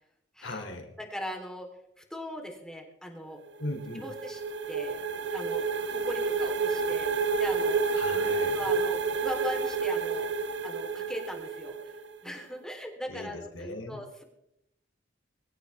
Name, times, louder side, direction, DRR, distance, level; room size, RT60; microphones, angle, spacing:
voice 1, 0.4-0.9 3.6-4.1 7.9-8.6 13.1-14.2, left 1 dB, 85° left, 3 dB, 3.5 m, -39 dB
voice 2, 1.0-1.7 2.0-3.4 3.9-4.4 4.7-5.0 5.3-7.9 8.5-10.3 10.6-11.9 12.2-14.2, equal, 5° left, 1 dB, 3.9 m, -39 dB
sound 1, 3.5-12.2, right 4 dB, 65° right, 1.2 m, -30 dB
24.5 x 15.5 x 3.6 m, 0.81 s
head